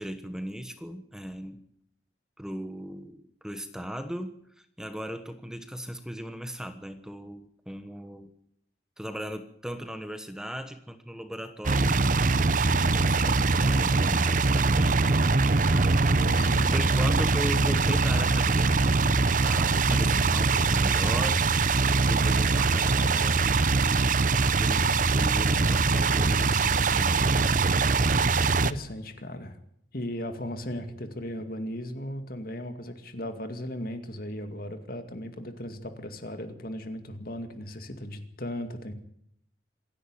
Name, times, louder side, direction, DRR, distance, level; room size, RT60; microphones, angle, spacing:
voice 1, 0.0-1.6 2.4-8.3 9.0-12.1 12.8-15.2 15.7-19.0 19.4-21.4 22.0-24.1 24.6-24.9 25.1-27.7, equal, 5° right, 8 dB, 1.3 m, -38 dB
sound 1, 11.6-28.7, right 4 dB, 45° right, 0.7 m, -23 dB
voice 2, 16.2-16.7 19.9-20.4 28.6-29.6 29.9-38.9, left 1 dB, 55° left, 7 dB, 2.4 m, -37 dB
26.5 x 11.0 x 9.1 m, 0.70 s
head